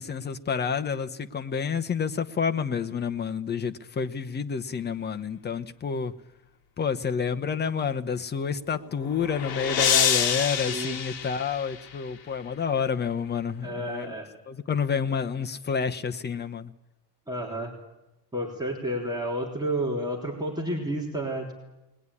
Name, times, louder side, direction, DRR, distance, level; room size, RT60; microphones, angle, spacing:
voice 1, 0.0-6.1 6.8-14.1 14.5-16.7, left 6 dB, 25° left, 0.9 m, -29 dB
sound 1, 8.7-12.1, left 8 dB, 55° left, 2.6 m, -27 dB
voice 2, 10.7-11.0 13.6-14.3 17.3-17.7 18.3-21.5, right 1 dB, 10° right, 3.5 m, -30 dB
22.0 x 20.5 x 9.8 m
cardioid pair, 155°, 43 cm